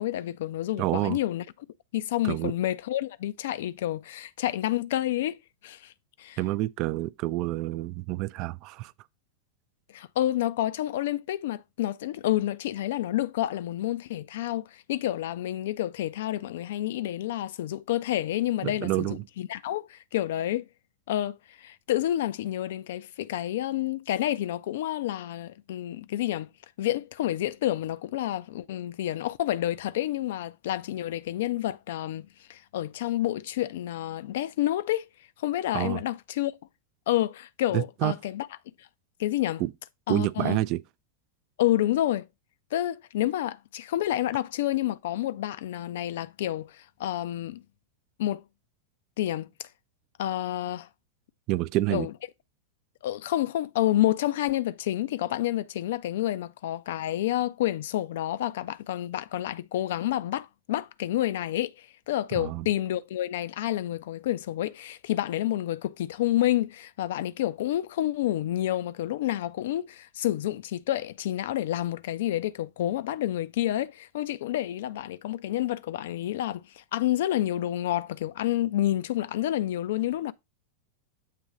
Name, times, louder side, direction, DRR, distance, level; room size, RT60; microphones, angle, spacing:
voice 1, 0.0-1.4 1.9-5.4 5.6-5.9 6.2-6.4 9.9-19.1 19.4-20.7 21.1-26.5 26.8-35.1 35.4-36.5 37.1-38.5 39.2-39.6 40.1-40.6 41.6-42.3 42.7-47.6 48.2-48.4 49.2-49.7 50.2-50.9 51.9-52.1 53.0-80.3, left 13 dB, 55° left, 0.4 m, -29 dB
voice 2, 0.8-1.2 2.2-2.5 6.4-8.9 18.6-19.3 35.7-36.0 37.7-38.1 39.6-39.7 40.1-40.8 51.5-52.1 62.3-62.7, right 17 dB, 40° right, 0.3 m, -28 dB
7.4 x 3.0 x 4.9 m
figure-of-eight pair, 90°, 0 cm